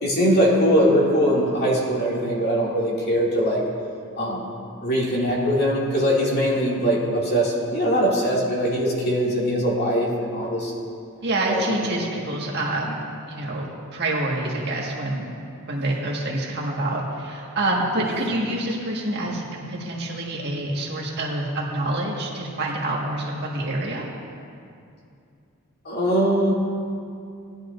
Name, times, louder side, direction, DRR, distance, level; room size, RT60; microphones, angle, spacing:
voice 1, 0.0-3.6 4.2-4.5 4.8-10.7 11.5-11.6 18.0-18.1 25.8-26.5, equal, 50° left, -5 dB, 2.4 m, -21 dB
voice 2, 11.2-13.0 13.3-15.3 15.7-24.1, right 1 dB, 50° right, -3 dB, 1.8 m, -27 dB
18.5 x 10.5 x 2.6 m, 2.5 s
head